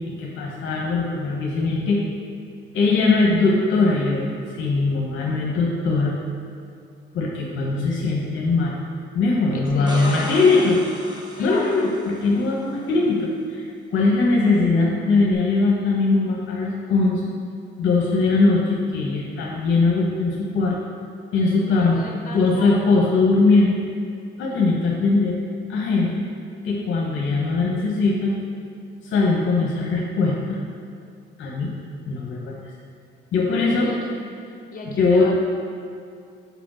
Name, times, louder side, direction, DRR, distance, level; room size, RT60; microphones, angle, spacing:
voice 1, 0.1-2.0 2.7-4.3 4.5-6.1 7.1-8.8 9.1-10.8 11.4-13.6 13.9-17.3 17.8-20.8 21.3-22.0 22.3-23.8 24.4-25.4 25.7-26.3 26.6-28.4 29.0-30.6 31.4-31.7 32.1-32.6 33.3-33.9 34.9-35.3, left 3 dB, 75° left, -2 dB, 1.0 m, -20 dB
voice 2, 9.5-10.7 11.4-11.8 21.7-23.0 33.5-34.2 34.7-35.4, left 2 dB, 45° left, 0 dB, 1.4 m, -35 dB
sound 1, 9.7-12.5 15.3-15.4, right 1 dB, 20° right, 1.1 m, -36 dB
5.3 x 5.1 x 6.1 m, 2.4 s
cardioid pair, 90°, 20 cm